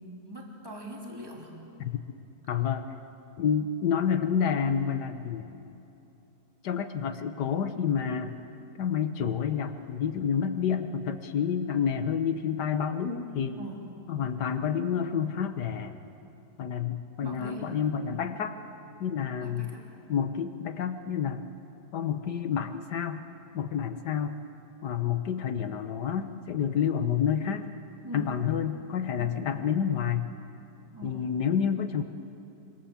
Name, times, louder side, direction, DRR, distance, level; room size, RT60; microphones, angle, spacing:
voice 1, 0.0-1.5 13.6-14.0 17.2-17.8 19.4-19.9 28.0-28.3 29.1-29.4 30.9-31.3, right 1 dB, 15° right, -2 dB, 3.5 m, -42 dB
voice 2, 2.5-2.9 3.4-5.4 6.6-8.4 8.8-13.6 14.1-16.0 16.6-18.6 19.0-19.7 20.1-21.4 21.9-23.2 23.5-24.3 24.8-27.7 28.1-30.3 31.0-32.0, left 7 dB, 80° left, 8 dB, 1.6 m, -29 dB
26.5 x 26.0 x 7.3 m, 2.9 s
omnidirectional pair, 1.8 m